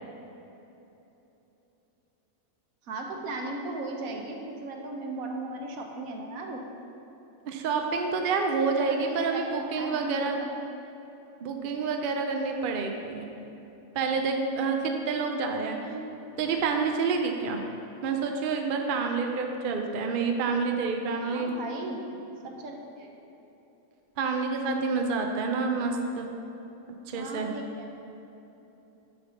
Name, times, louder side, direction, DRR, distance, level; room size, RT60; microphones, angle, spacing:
voice 1, 2.8-6.6 8.8-10.5 15.8-16.1 21.1-22.0 22.4-23.1 27.1-27.9, right 2 dB, 85° right, 2 dB, 1.3 m, -37 dB
voice 2, 7.5-10.4 11.4-13.3 13.9-15.8 16.4-17.6 18.0-21.5 24.2-26.3 27.1-27.5, right 4 dB, 50° right, 3 dB, 0.7 m, -28 dB
9.6 x 3.4 x 5.5 m, 3.0 s
omnidirectional pair, 1.4 m